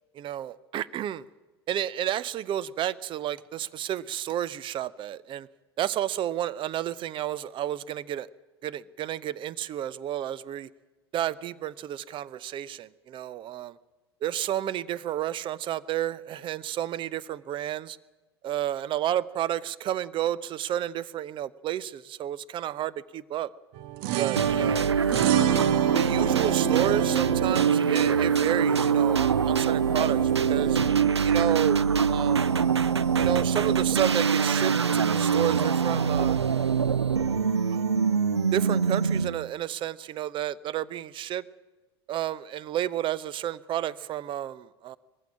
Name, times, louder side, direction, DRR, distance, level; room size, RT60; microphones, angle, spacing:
voice 1, 0.2-1.2 1.7-5.5 5.8-8.3 8.6-10.7 11.1-13.7 14.2-18.0 18.4-23.5 24.2-24.9 25.9-30.2 30.5-30.8 31.2-31.8 32.1-32.5 33.2-36.4 37.7-37.8 38.5-41.4 42.1-45.0, right 11 dB, 40° right, 19 dB, 0.8 m, -31 dB
sound 1, 23.8-31.1, right 15 dB, 55° right, 1.2 m, -29 dB
sound 2, 24.4-39.5, right 6 dB, 90° right, 0.6 m, -24 dB
21.0 x 15.5 x 8.7 m, 1.2 s
figure-of-eight pair, 80°, 14 cm